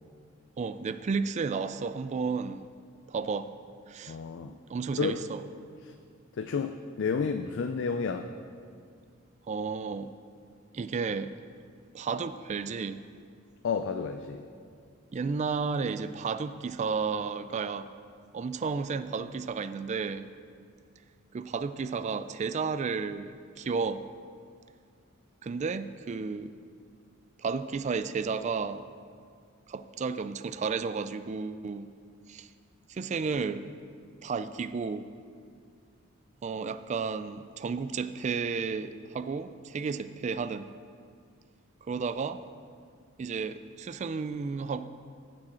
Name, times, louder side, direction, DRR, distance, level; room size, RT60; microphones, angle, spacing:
voice 1, 0.6-2.7 3.1-3.5 3.9-4.2 4.4-5.4 9.5-10.1 10.7-11.3 11.9-13.0 15.1-17.9 18.3-20.3 21.3-24.0 25.4-26.5 27.4-28.8 29.7-31.9 32.3-32.5 32.9-33.7 34.2-35.1 36.4-40.7 41.9-42.4 43.2-44.9, right 5 dB, 35° right, 12 dB, 0.3 m, -32 dB
voice 2, 4.1-4.5 5.0-5.2 5.8-6.0 6.4-8.3 13.6-14.5, left 5 dB, 60° left, 7 dB, 0.4 m, -31 dB
15.0 x 6.2 x 4.3 m, 2.3 s
head